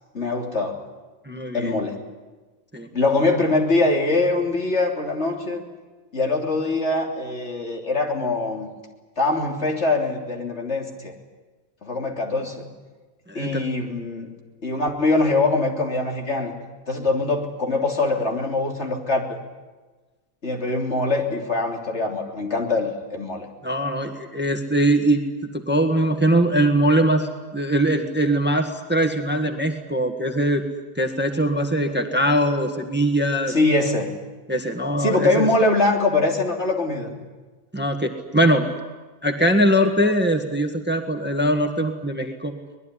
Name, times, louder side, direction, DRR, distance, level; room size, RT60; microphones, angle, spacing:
voice 1, 0.1-0.8 1.5-2.0 2.9-5.6 6.1-8.7 9.2-11.1 11.8-12.7 13.4-14.3 14.6-16.5 16.9-19.4 20.4-23.5 33.5-34.2 35.0-37.1, left 2 dB, 50° left, 2 dB, 3.6 m, -23 dB
voice 2, 1.2-1.8 2.7-2.9 13.3-13.6 23.6-25.2 25.5-30.6 30.9-33.5 34.5-35.5 37.7-38.7 39.2-42.5, right 1 dB, 10° right, 6 dB, 1.6 m, -21 dB
24.0 x 20.5 x 10.0 m, 1.3 s
omnidirectional pair, 1.5 m